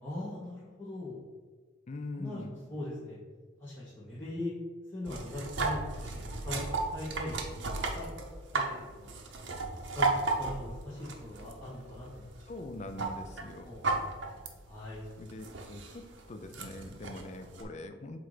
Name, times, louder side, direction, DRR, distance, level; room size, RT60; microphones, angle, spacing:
voice 1, 0.0-1.2 2.2-3.2 3.6-4.5 4.9-7.3 7.9-8.2 8.5-9.1 9.6-12.3 12.9-13.0 13.6-13.9 14.7-15.0, left 1 dB, 10° left, -10 dB, 1.0 m, -41 dB
voice 2, 1.9-2.5 12.5-13.7 15.2-18.2, left 2 dB, 35° left, 6 dB, 0.4 m, -43 dB
sound 1, 5.1-17.6, right 3 dB, 60° right, 0.7 m, -36 dB
7.5 x 2.6 x 4.9 m, 1.5 s
head